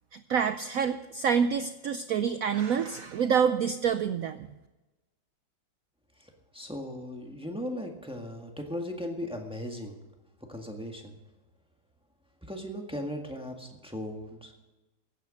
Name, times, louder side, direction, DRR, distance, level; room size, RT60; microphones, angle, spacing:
voice 1, 0.1-4.5, right 7 dB, 85° right, 10 dB, 0.7 m, -27 dB
voice 2, 6.2-10.0 10.5-11.1 12.5-14.5, left 1 dB, 5° right, 2 dB, 1.5 m, -37 dB
15.5 x 9.4 x 6.4 m, 1.1 s
omnidirectional pair, 2.1 m